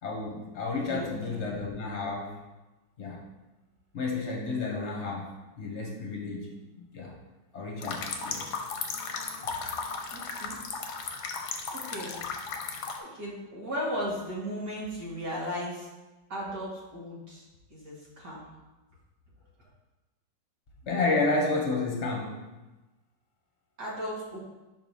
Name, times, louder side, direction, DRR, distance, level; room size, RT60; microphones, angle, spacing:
voice 1, 0.0-2.4 3.0-3.2 3.9-6.5 6.9-7.1 7.5-8.5 20.9-22.5, left 3 dB, 40° left, -1 dB, 1.3 m, -31 dB
voice 2, 0.8-1.5 10.1-10.6 11.7-12.2 13.0-15.9 16.3-17.4 17.7-18.5 23.8-24.4, equal, 60° right, -6 dB, 2.4 m, -36 dB
sound 1, 7.8-13.0, left 5 dB, 65° left, 1.2 m, -35 dB
5.2 x 4.7 x 5.5 m, 1.1 s
omnidirectional pair, 2.0 m